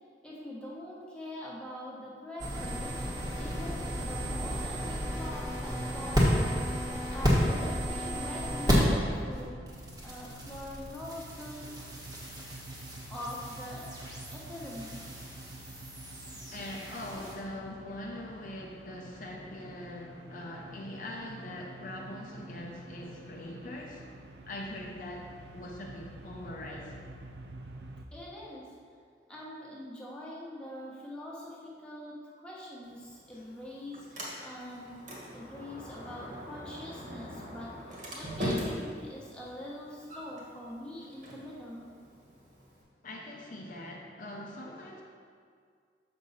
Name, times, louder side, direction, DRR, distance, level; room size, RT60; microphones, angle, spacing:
voice 1, 0.2-9.6 10.0-11.7 13.1-15.0 28.1-28.7 29.3-35.0 35.3-41.9, left 1 dB, 5° left, -6 dB, 1.2 m, -44 dB
sound 1, 2.4-9.0 9.3-17.3, equal, 20° right, 1.3 m, -32 dB
sound 2, 8.2-28.0, right 1 dB, 70° right, 0.5 m, -49 dB
voice 2, 16.5-24.0 24.5-27.1 33.3-33.5 43.0-45.0, left 1 dB, 50° left, -1 dB, 0.7 m, -42 dB
Sliding door, 32.8-42.8, equal, 45° right, 1.5 m, -41 dB
6.4 x 6.1 x 4.1 m, 2.1 s
head